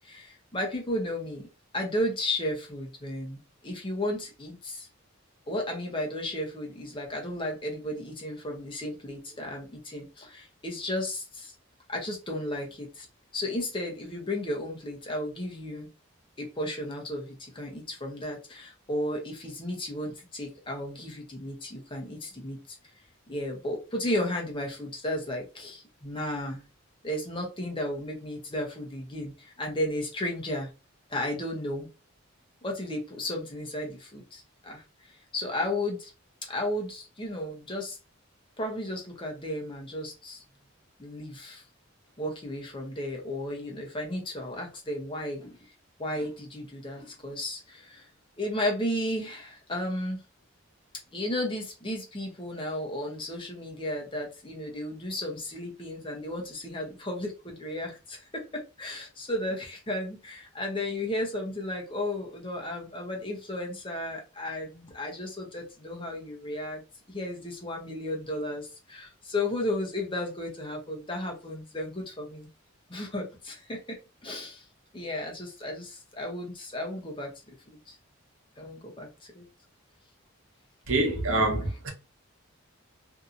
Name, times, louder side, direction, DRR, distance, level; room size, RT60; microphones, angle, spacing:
voice 1, 0.0-1.5 1.7-4.9 5.5-11.5 11.9-13.1 13.3-15.9 16.4-22.6 23.3-26.6 27.0-30.7 31.1-31.9 32.6-36.1 36.4-38.0 38.6-40.4 41.0-41.6 42.2-45.6 46.0-48.1 48.4-50.2 51.1-66.8 67.1-72.5 72.9-74.7 74.9-78.0 78.6-79.4, left 1 dB, 25° left, 0.7 m, -34 dB
voice 2, 80.9-81.9, right 2 dB, 75° right, 0.9 m, -25 dB
2.7 x 2.6 x 2.4 m
head